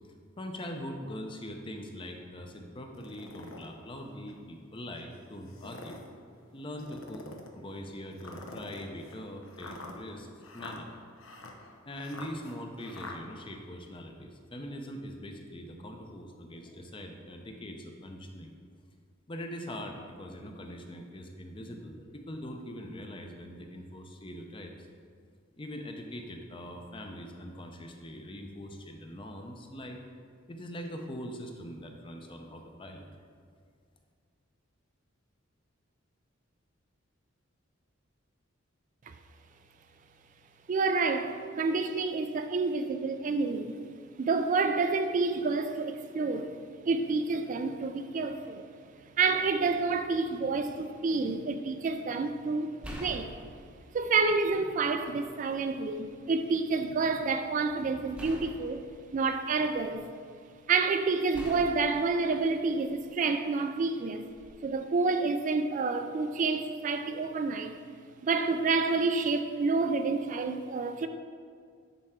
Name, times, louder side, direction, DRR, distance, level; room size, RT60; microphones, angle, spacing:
voice 1, 0.4-6.0 6.5-10.3 10.5-10.9 11.9-18.5 19.3-24.7 25.6-30.0 30.5-33.1, equal, 25° left, 0.6 m, -42 dB
sound 1, 2.9-3.7 4.3-4.4 5.4-6.1 6.8-7.5 8.2-13.2, left 2 dB, 80° left, 0.8 m, -46 dB
voice 2, 40.7-43.8 44.2-46.6 46.8-48.7 49.2-53.3 53.9-58.8 59.1-60.0 60.7-64.3 64.6-67.8 68.2-71.1, right 4 dB, 40° right, 0.3 m, -29 dB
sound 2, 51.2-51.3 52.8-54.7 55.1-56.1 58.2-60.1 61.3-63.2 64.3-64.5, equal, 5° right, 0.8 m, -46 dB
11.0 x 4.3 x 3.7 m
head